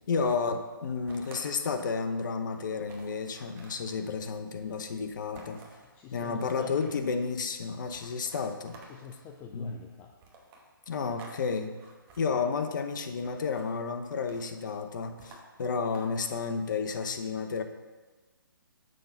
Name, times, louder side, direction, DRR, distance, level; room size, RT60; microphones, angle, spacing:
voice 1, 0.1-5.6 6.1-8.8 9.5-9.8 10.9-11.8 12.2-17.6, left 5 dB, 55° left, 7 dB, 0.8 m, -31 dB
sound 1, 1.1-2.0 2.4-2.5 2.8-4.0 5.3-5.9 6.5-7.2 7.9-9.2 10.2-11.4 11.7-12.3 13.2-13.7 14.0-14.6 15.2-16.4, right 3 dB, 20° right, 1.1 m, -52 dB
voice 2, 6.0-6.9 8.9-10.1, left 7 dB, 15° left, 2 dB, 0.4 m, -45 dB
6.7 x 5.6 x 5.3 m, 1.3 s
hypercardioid pair, 145°, 12 cm